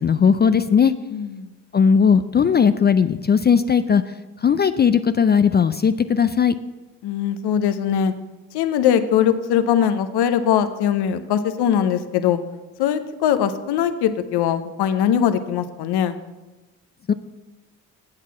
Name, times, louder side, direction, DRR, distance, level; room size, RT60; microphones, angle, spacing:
voice 1, 0.0-0.9 1.7-4.0 4.4-6.5 17.1-17.2, left 6 dB, 25° left, 12 dB, 0.3 m, -17 dB
voice 2, 1.1-1.5 7.0-8.1 8.5-12.4 12.8-16.2, left 9 dB, 60° left, 11 dB, 0.8 m, -21 dB
8.2 x 6.6 x 5.9 m, 1.1 s
hypercardioid pair, 50°, 44 cm